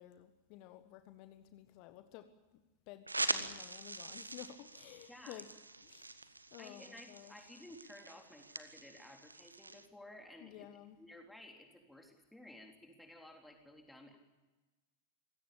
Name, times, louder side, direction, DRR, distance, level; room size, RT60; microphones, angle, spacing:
voice 1, 0.0-2.6 2.9-5.5 5.8-6.1 6.5-7.5 10.4-11.0, left 13 dB, 45° left, 9 dB, 1.4 m, -53 dB
sound 1, 3.1-9.9, right 2 dB, 80° right, 1.2 m, -43 dB
voice 2, 5.1-5.4 6.6-10.7 11.0-14.2, left 1 dB, 5° left, 2 dB, 3.7 m, -55 dB
25.5 x 17.0 x 8.8 m, 1.2 s
figure-of-eight pair, 90°, 0 cm